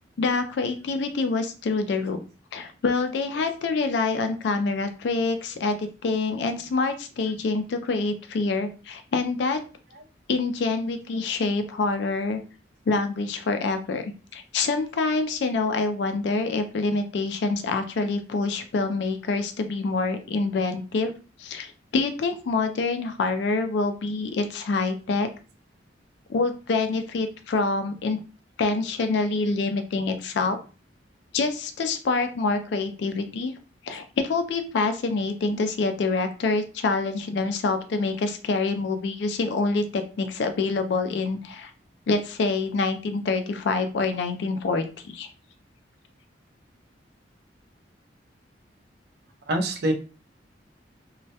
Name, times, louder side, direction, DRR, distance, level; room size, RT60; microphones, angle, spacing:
voice 1, 0.2-2.2 2.5-9.6 10.3-12.4 12.9-21.1 21.4-25.3 26.3-28.2 28.6-30.6 31.3-33.5 33.8-41.7 42.1-45.3, left 3 dB, 65° left, 7 dB, 0.3 m, -26 dB
voice 2, 49.5-49.9, right 1 dB, 60° right, 4 dB, 0.5 m, -25 dB
2.2 x 2.0 x 2.7 m, 0.34 s
head